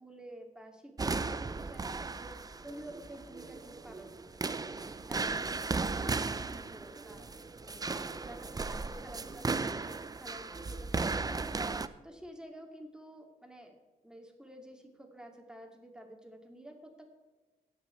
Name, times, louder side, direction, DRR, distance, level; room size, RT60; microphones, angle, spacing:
voice 1, 0.0-4.7 5.1-5.4 5.7-7.3 7.6-11.6 12.0-13.8 14.0-17.0, right 1 dB, 5° right, 2 dB, 2.4 m, -50 dB
sound 1, 1.0-11.9, right 4 dB, 25° right, 0.6 m, -36 dB
17.5 x 6.3 x 4.5 m, 1.3 s
cardioid pair, 85°, 15 cm